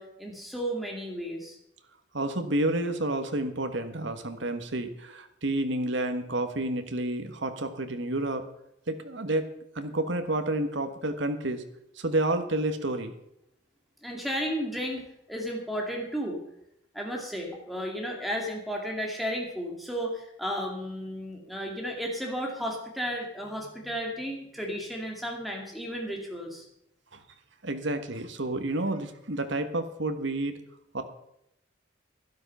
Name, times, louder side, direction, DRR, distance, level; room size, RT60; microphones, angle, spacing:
voice 1, 0.0-1.6 14.0-16.4 16.9-26.7, equal, ahead, 0 dB, 2.3 m, -33 dB
voice 2, 2.1-8.4 8.9-11.6 11.9-13.2 27.1-27.2 27.6-30.6 30.9-31.0, right 1 dB, 65° right, 7 dB, 1.4 m, -30 dB
12.0 x 12.0 x 5.5 m, 0.80 s
head